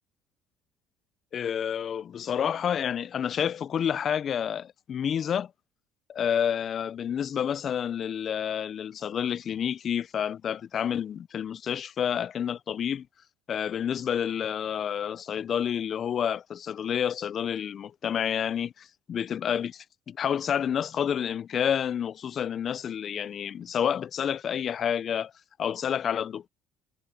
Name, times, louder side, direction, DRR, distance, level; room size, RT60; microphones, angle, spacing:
voice 1, 1.3-5.5 6.1-13.1 13.5-25.3 25.6-26.5, left 8 dB, 50° left, 1.1 m, -29 dB
hypercardioid pair, 65°, 0 cm